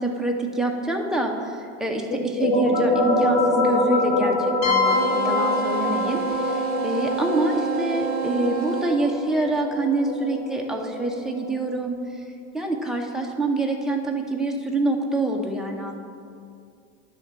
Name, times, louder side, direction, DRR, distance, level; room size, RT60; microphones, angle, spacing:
voice 1, 0.0-11.9 12.5-16.0, right 2 dB, ahead, 0 dB, 0.6 m, -26 dB
sound 1, 2.1-11.5, left 1 dB, 25° left, 1.6 m, -25 dB
sound 2, 4.6-8.2, left 5 dB, 85° left, 2.0 m, -27 dB
sound 3, 4.8-8.9, right 7 dB, 25° right, 1.0 m, -29 dB
10.5 x 3.6 x 7.3 m, 2.4 s
supercardioid pair, 125°, 40 cm